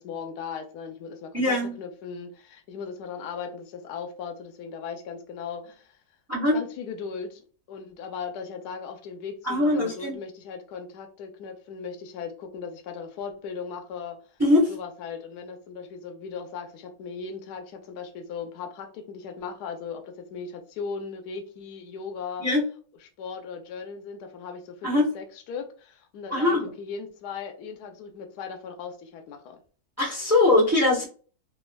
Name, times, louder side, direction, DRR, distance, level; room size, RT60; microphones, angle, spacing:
voice 1, 0.0-6.0 6.5-14.2 14.7-22.4 23.0-29.6, left 6 dB, 80° left, 5 dB, 1.2 m, -38 dB
voice 2, 1.3-1.7 6.3-6.6 9.4-10.2 14.4-14.7 22.4-22.6 24.8-25.0 26.3-26.6 30.0-31.1, left 2 dB, 15° right, -2 dB, 0.7 m, -21 dB
3.3 x 2.9 x 2.2 m, 0.40 s
omnidirectional pair, 1.7 m